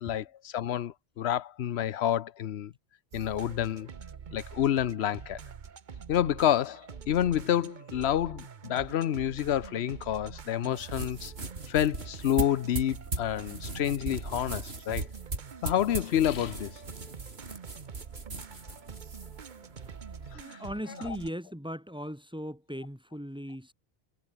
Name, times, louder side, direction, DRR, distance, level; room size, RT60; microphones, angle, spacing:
voice 1, 0.0-2.7 3.1-3.9 4.3-5.4 6.1-11.3 11.7-15.1 15.6-16.7 20.3-20.6 21.0-21.2, left 11 dB, 90° left, 1.0 m, -29 dB
sound 1, 3.1-21.3, right 6 dB, 50° right, 1.0 m, -46 dB
sound 2, 10.6-20.3, right 2 dB, 80° right, 3.7 m, -39 dB
voice 2, 20.3-23.7, equal, 5° right, 2.2 m, -38 dB
omnidirectional pair, 1.0 m